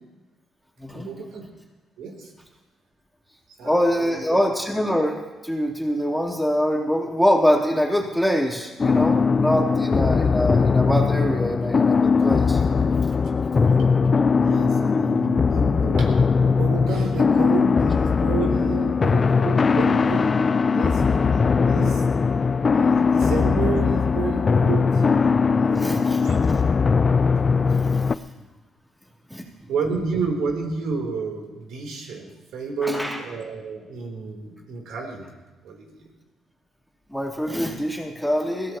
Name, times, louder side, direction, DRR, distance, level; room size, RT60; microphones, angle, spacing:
voice 1, 0.9-1.4 2.0-2.3 3.6-4.2 14.3-20.4 20.7-22.0 22.7-25.3 25.6-26.3 29.7-32.3 32.5-35.3 35.6-35.9, right 4 dB, 80° right, 1 dB, 3.6 m, -31 dB
voice 2, 3.6-12.6 25.7-26.2 26.5-26.6 27.7-28.2 29.3-29.4 32.8-33.2 37.1-38.8, equal, ahead, -2 dB, 3.5 m, -24 dB
sound 1, 8.8-28.1, left 5 dB, 35° left, 0.5 m, -20 dB
22.0 x 16.0 x 3.0 m, 1.2 s
cardioid pair, 90°, 0 cm